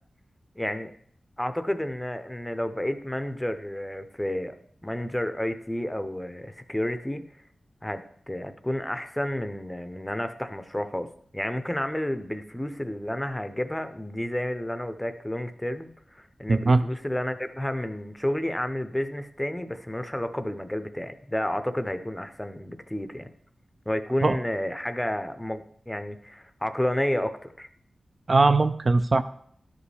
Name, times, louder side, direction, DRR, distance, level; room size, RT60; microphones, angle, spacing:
voice 1, 0.6-0.9 1.4-4.5 4.8-7.2 7.8-11.1 11.3-15.9 16.1-23.3 23.9-27.7, left 1 dB, 10° left, 10 dB, 0.6 m, -31 dB
voice 2, 16.5-16.8 24.2-24.4 28.3-29.2, right 3 dB, 45° right, 10 dB, 0.3 m, -20 dB
12.0 x 5.2 x 3.3 m, 0.64 s
wide cardioid pair, 80°, 0 cm